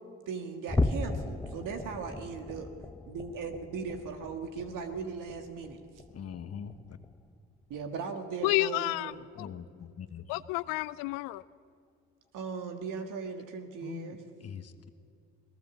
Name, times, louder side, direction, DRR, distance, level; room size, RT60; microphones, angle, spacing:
voice 1, 0.3-2.8 3.1-5.8 7.7-9.3 12.3-14.2, right 5 dB, 65° right, 6 dB, 1.8 m, -38 dB
sound 1, 0.7-7.3 7.7-8.0 8.4-8.6 9.1-9.2, left 2 dB, 10° left, 0.8 m, -36 dB
voice 2, 6.1-6.7 9.3-10.2 13.8-14.9, left 7 dB, 45° left, 9 dB, 1.3 m, -42 dB
voice 3, 8.4-9.1 9.4-9.5 10.3-11.4, left 19 dB, 80° left, 16 dB, 0.5 m, -30 dB
19.5 x 18.5 x 7.2 m, 2.3 s
hypercardioid pair, 60°, 34 cm